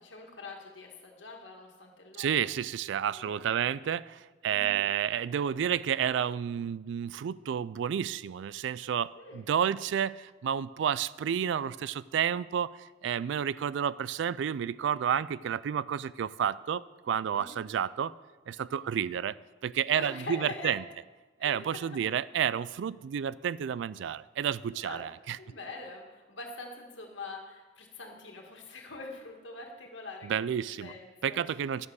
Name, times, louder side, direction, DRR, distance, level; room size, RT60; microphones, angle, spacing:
voice 1, 0.0-2.4 3.1-3.7 4.4-4.8 9.2-9.5 17.3-17.6 19.9-20.7 21.4-22.2 24.6-25.0 25.4-30.5 30.8-31.7, left 3 dB, 75° left, 1 dB, 1.8 m, -44 dB
voice 2, 2.2-12.7 13.0-18.1 18.5-19.4 19.6-20.8 21.4-25.4 30.2-30.9 31.2-31.9, right 8 dB, 70° right, 18 dB, 0.3 m, -30 dB
10.5 x 7.3 x 6.4 m, 1.2 s
head